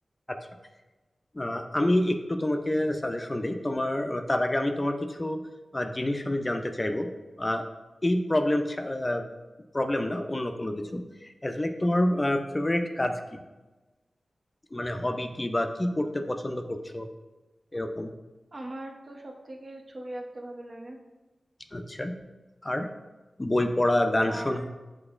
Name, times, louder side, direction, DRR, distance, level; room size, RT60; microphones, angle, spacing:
voice 1, 1.3-5.4 5.7-7.1 7.4-7.6 8.0-9.2 9.7-13.4 14.7-17.1 17.7-18.1 21.7-22.1 22.6-22.9 23.4-24.6, left 1 dB, 30° left, 5 dB, 0.4 m, -27 dB
voice 2, 18.5-21.0 24.2-24.7, right 1 dB, 50° right, 2 dB, 0.6 m, -40 dB
5.9 x 2.9 x 2.4 m, 1.2 s
cardioid pair, 45°, 0 cm